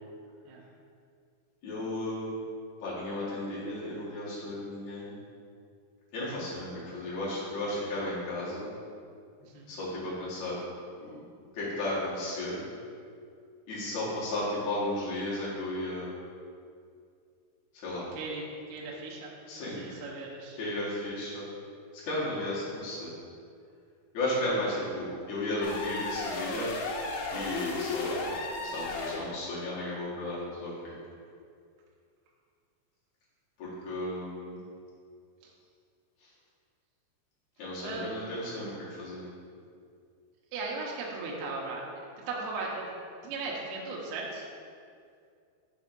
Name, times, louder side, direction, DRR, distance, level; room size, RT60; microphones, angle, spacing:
voice 1, 1.6-2.3 2.8-5.1 6.1-8.7 9.7-10.6 11.0-11.2 11.5-12.7 13.7-16.1 17.7-18.1 19.5-20.0 20.6-21.5 22.0-23.1 24.1-26.7 27.3-30.9 33.6-34.6 36.2-36.3 37.6-39.3, left 1 dB, 55° left, -8 dB, 2.3 m, -34 dB
voice 2, 9.4-9.7 18.2-19.3 19.8-20.6 37.8-38.3 40.5-41.8 42.2-42.9 43.2-44.5, right 3 dB, 75° right, -3 dB, 2.5 m, -37 dB
sound 1, 25.6-29.3, left 3 dB, 80° left, 3.0 m, -34 dB
7.0 x 4.0 x 5.3 m, 2.3 s
omnidirectional pair, 5.4 m